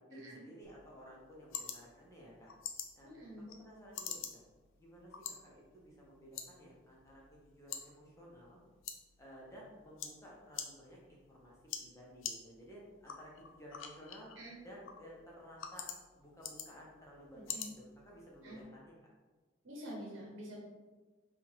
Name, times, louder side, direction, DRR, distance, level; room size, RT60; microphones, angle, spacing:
voice 1, 0.0-2.5 3.0-4.4 4.8-8.6 9.2-14.3 14.6-15.9 16.1-19.1, equal, 15° left, -4 dB, 0.8 m, -55 dB
sound 1, 0.6-18.6, left 7 dB, 85° left, 0.4 m, -48 dB
voice 2, 3.0-3.5 14.4-14.6 17.5-17.7 18.4-18.6 19.6-20.6, equal, 85° right, -3 dB, 0.9 m, -47 dB
3.7 x 2.4 x 4.4 m, 1.3 s
head